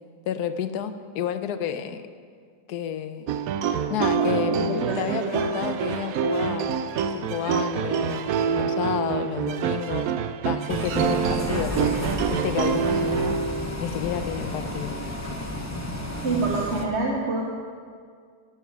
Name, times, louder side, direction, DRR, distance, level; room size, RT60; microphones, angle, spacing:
voice 1, 0.3-2.0 2.7-3.3 3.9-6.8 7.1-10.1 10.4-13.4 13.8-15.0, left 9 dB, 70° left, 10 dB, 1.1 m, -30 dB
sound 1, 3.3-13.7, right 7 dB, 70° right, 0.9 m, -26 dB
voice 2, 4.2-5.6 16.2-17.4, right 3 dB, 45° right, -1 dB, 1.1 m, -27 dB
Bus, 10.7-16.8, left 1 dB, 25° left, 0.3 m, -32 dB
12.5 x 9.4 x 4.8 m, 2.1 s
omnidirectional pair, 1.9 m